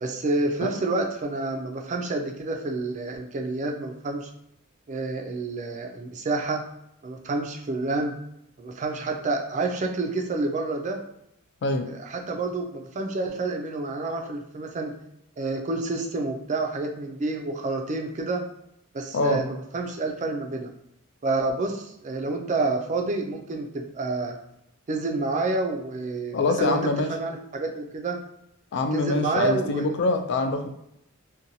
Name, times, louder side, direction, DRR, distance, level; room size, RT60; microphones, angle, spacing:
voice 1, 0.0-4.3 4.9-6.6 7.0-8.2 8.6-11.0 11.9-14.9 15.4-18.4 18.9-20.7 21.2-24.4 24.9-26.8 27.1-28.2 28.9-29.9, right 3 dB, 35° right, 3 dB, 0.4 m, -28 dB
voice 2, 26.3-27.1 28.7-30.7, left 2 dB, 50° left, 6 dB, 0.3 m, -24 dB
2.7 x 2.2 x 2.6 m, 0.77 s
head